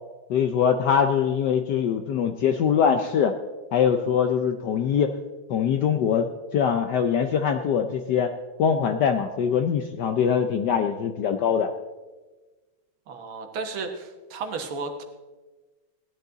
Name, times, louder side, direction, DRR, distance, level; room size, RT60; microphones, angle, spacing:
voice 1, 0.3-3.3 3.7-5.1 5.5-8.3 8.6-11.7, left 7 dB, 70° left, 7 dB, 1.0 m, -23 dB
voice 2, 13.1-15.0, right 4 dB, 70° right, 5 dB, 2.0 m, -33 dB
17.0 x 10.5 x 3.9 m, 1.2 s
omnidirectional pair, 2.4 m